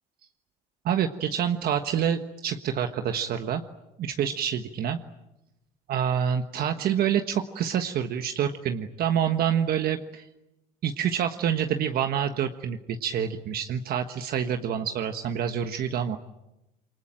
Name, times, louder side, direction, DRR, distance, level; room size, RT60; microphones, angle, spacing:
voice 1, 0.8-3.6 4.0-5.0 5.9-10.2 10.8-16.2, right 8 dB, 65° right, 7 dB, 1.4 m, -27 dB
27.5 x 24.5 x 9.0 m, 0.94 s
cardioid pair, 110°, 17 cm